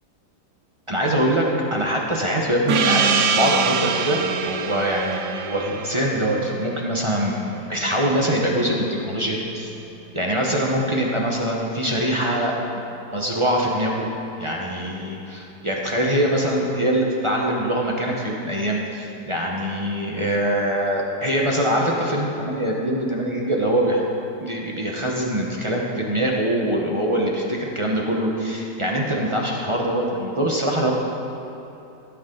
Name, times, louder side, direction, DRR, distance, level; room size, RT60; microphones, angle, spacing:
voice 1, 0.9-1.4 1.7-3.0 3.4-4.2 4.4-7.4 7.7-9.7 10.1-12.6 13.1-14.1 14.4-24.0 24.4-30.9, right 1 dB, 25° right, -2 dB, 0.8 m, -23 dB
Gong, 2.7-7.7, right 6 dB, 65° right, 0.9 m, -24 dB
14.5 x 8.6 x 3.9 m, 2.9 s
omnidirectional pair, 1.8 m